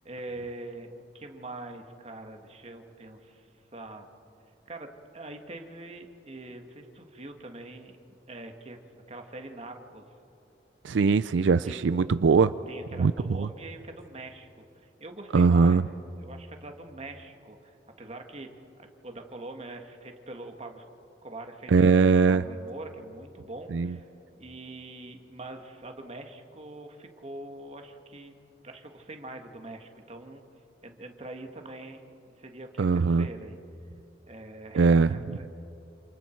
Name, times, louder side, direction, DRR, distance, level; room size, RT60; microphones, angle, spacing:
voice 1, 0.0-4.1 4.7-7.9 8.3-8.8 9.1-10.0 10.9-11.3 11.6-11.8 12.7-15.8 16.2-18.5 18.8-20.8 21.2-24.1 24.4-28.3 28.6-30.4 30.8-32.0 32.4-33.6 34.3-35.5, right 2 dB, 35° right, 4 dB, 1.7 m, -43 dB
voice 2, 10.8-12.5 13.0-13.5 15.3-15.8 21.7-22.4 23.7-23.9 32.8-33.3 34.7-35.4, right 5 dB, 80° right, 14 dB, 0.4 m, -21 dB
28.5 x 27.5 x 4.5 m, 2.9 s
head